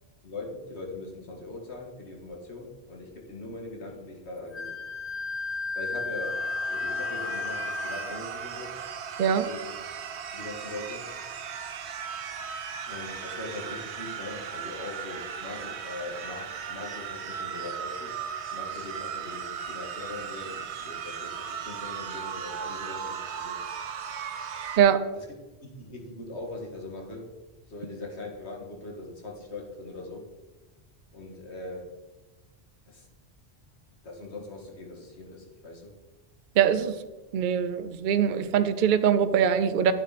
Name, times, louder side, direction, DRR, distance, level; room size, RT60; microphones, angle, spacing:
voice 1, 0.2-4.8 5.7-8.7 9.4-9.8 10.3-11.1 12.9-18.2 18.5-23.6 25.1-25.3 25.6-27.3 27.7-30.3 31.1-32.0 32.9-33.1 34.0-35.9, left 2 dB, 90° left, 0 dB, 2.0 m, -41 dB
Wind instrument woodwind instrument, 4.5-8.2, left 4 dB, 40° left, 0.4 m, -33 dB
sound 1, 6.2-24.8, right 7 dB, 85° right, 1.0 m, -37 dB
voice 2, 36.6-36.9 37.3-39.9, right 8 dB, 55° right, 11 dB, 0.7 m, -22 dB
9.3 x 7.3 x 4.1 m, 1.1 s
omnidirectional pair, 1.1 m